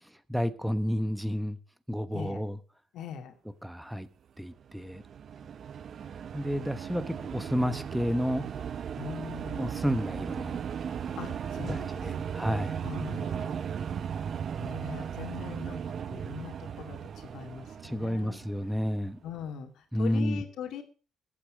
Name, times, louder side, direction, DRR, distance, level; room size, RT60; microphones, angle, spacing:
voice 1, 0.3-1.6 1.9-2.6 3.6-4.1 4.4-5.0 6.3-8.4 9.6-10.6 11.7-12.8 17.8-19.2 19.9-20.4, equal, ahead, 1.1 m, -30 dB
voice 2, 2.9-3.4 9.0-9.8 11.1-12.4 12.8-13.7 14.6-15.8 16.1-18.4 18.7-18.8 19.2-20.8, left 7 dB, 75° left, 2.4 m, -41 dB
sound 1, 4.6-19.1, right 8 dB, 50° right, 0.7 m, -37 dB
14.0 x 8.8 x 6.3 m
cardioid pair, 145°, 0 cm